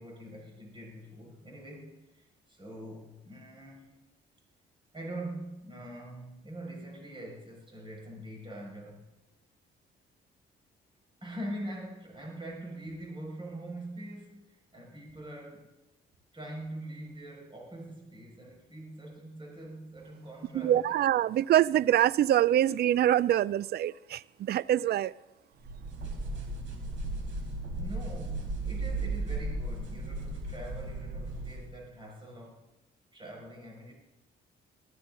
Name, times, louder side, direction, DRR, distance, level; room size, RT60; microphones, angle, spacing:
voice 1, 0.0-3.9 4.9-9.1 11.2-15.7 16.3-21.0 27.7-32.7 33.1-33.9, right 1 dB, 25° right, 5.6 m, -43 dB
voice 2, 20.5-25.1, right 12 dB, 55° right, 0.4 m, -25 dB
sound 1, 25.7-31.7, right 2 dB, 75° right, 4.0 m, -35 dB
19.5 x 15.5 x 3.8 m
cardioid pair, 90°, 20 cm